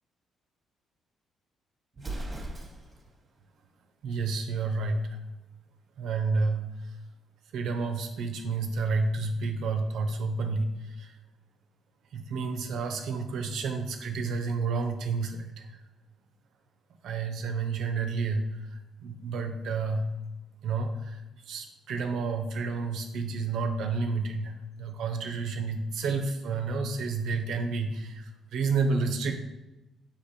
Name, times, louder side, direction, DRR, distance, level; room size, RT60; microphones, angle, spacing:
Explosion, 1.9-3.1, right 2 dB, 25° right, 0.9 m, -37 dB
voice 1, 4.0-5.2 6.0-7.0 7.5-11.2 12.1-15.8 17.0-20.1 20.6-29.3, right 4 dB, 80° right, 5 dB, 0.4 m, -30 dB
4.0 x 2.8 x 4.2 m, 1.0 s
cardioid pair, 90°, 0 cm